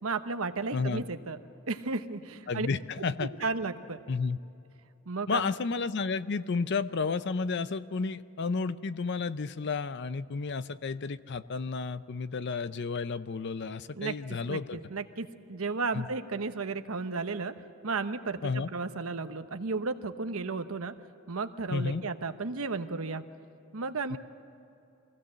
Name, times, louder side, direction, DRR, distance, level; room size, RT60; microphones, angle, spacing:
voice 1, 0.0-1.4 1.7-2.7 3.2-4.0 5.1-5.5 14.0-14.1 14.5-17.5 17.8-20.9 21.3-23.3 23.7-24.2, right 4 dB, 75° right, 9 dB, 1.0 m, -34 dB
voice 2, 0.7-1.0 2.5-3.3 4.1-4.4 5.3-14.8 15.9-16.1 18.4-18.7 21.7-22.0 24.1-24.2, left 4 dB, 55° left, 14 dB, 0.6 m, -32 dB
23.5 x 16.5 x 7.5 m, 2.8 s
head